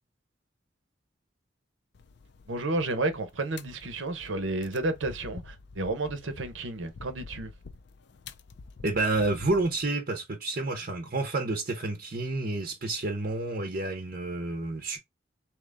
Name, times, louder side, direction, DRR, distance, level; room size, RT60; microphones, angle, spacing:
sound 1, 1.9-9.8, left 4 dB, 65° left, 0.5 m, -48 dB
voice 1, 2.5-7.5, right 2 dB, 85° right, 0.9 m, -31 dB
voice 2, 8.8-15.0, right 2 dB, 50° right, 0.7 m, -29 dB
3.7 x 3.0 x 3.4 m
head